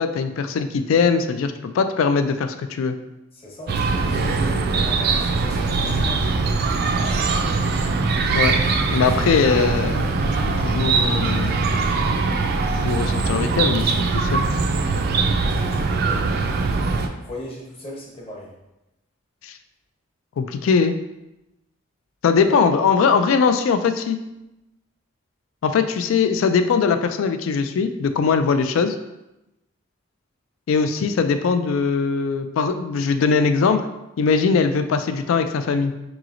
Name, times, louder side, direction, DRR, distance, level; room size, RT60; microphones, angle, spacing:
voice 1, 0.0-3.0 8.3-8.6 8.9-10.2 10.6-11.6 12.8-14.5 19.4-19.5 20.4-21.0 22.2-24.2 25.6-28.9 30.7-33.8 34.2-35.9, left 5 dB, 80° left, 8 dB, 0.3 m, -20 dB
voice 2, 3.3-6.4 7.1-7.4 15.4-16.3 17.2-18.5 22.3-22.6, left 1 dB, 30° left, -3 dB, 0.8 m, -38 dB
Chirp tweet, 3.7-17.1, right 4 dB, 50° right, 0.3 m, -21 dB
4.7 x 3.0 x 2.5 m, 0.93 s
head